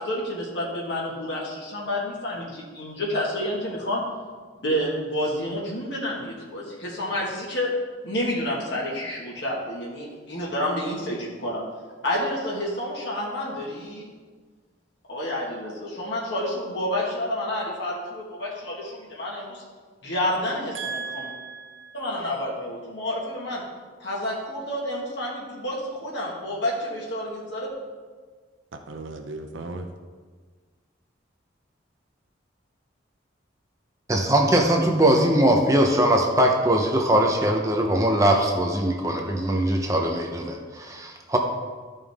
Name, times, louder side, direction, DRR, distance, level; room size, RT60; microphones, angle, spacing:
voice 1, 0.0-4.0 4.6-7.7 8.0-11.6 12.0-14.1 15.1-19.6 20.0-21.3 21.9-23.6 24.0-27.7, left 1 dB, 65° left, -5 dB, 1.8 m, -29 dB
voice 2, 20.7-21.9 28.7-29.9, right 4 dB, 85° right, 5 dB, 0.7 m, -35 dB
voice 3, 34.1-41.4, right 1 dB, 15° right, 2 dB, 0.8 m, -21 dB
13.0 x 5.4 x 3.6 m, 1.5 s
head